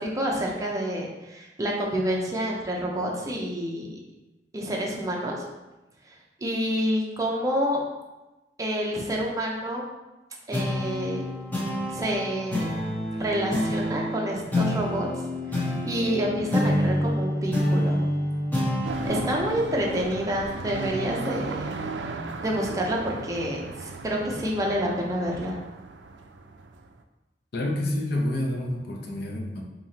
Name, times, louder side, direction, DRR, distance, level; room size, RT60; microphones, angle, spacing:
voice 1, 0.0-4.0 4.5-5.4 6.4-7.8 8.6-9.8 10.5-11.2 11.9-12.7 13.1-15.1 15.5-18.0 18.8-21.7 22.4-25.6, equal, 20° right, -2 dB, 0.6 m, -28 dB
sound 1, 10.5-21.3, left 1 dB, 10° left, 1.0 m, -28 dB
sound 2, 18.8-26.9, right 3 dB, 85° right, 0.4 m, -36 dB
voice 2, 27.5-29.6, left 1 dB, 65° left, 0 dB, 0.7 m, -28 dB
4.6 x 2.9 x 2.8 m, 1.1 s
head